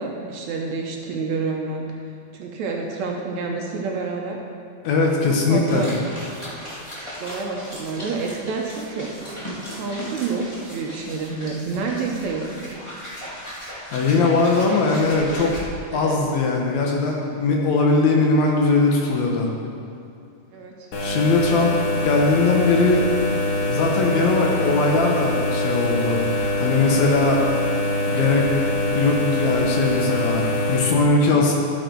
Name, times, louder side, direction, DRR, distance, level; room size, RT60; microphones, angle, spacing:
voice 1, 0.0-1.8 2.3-4.4 5.0-5.2 5.5-5.9 6.9-9.1 9.7-12.8 15.9-16.2 20.5-20.7, right 4 dB, 70° right, 0 dB, 2.0 m, -28 dB
voice 2, 4.8-5.9 13.9-15.5 15.9-19.5 21.0-21.7 22.0-23.1 23.7-27.6 28.1-28.5 29.0-31.5, left 3 dB, 70° left, 0 dB, 2.3 m, -20 dB
sound 1, 5.7-15.6, equal, 20° left, 0.9 m, -37 dB
sound 2, 20.9-30.8, left 1 dB, 50° left, 2.0 m, -24 dB
12.0 x 7.8 x 4.5 m, 2.4 s
omnidirectional pair, 3.6 m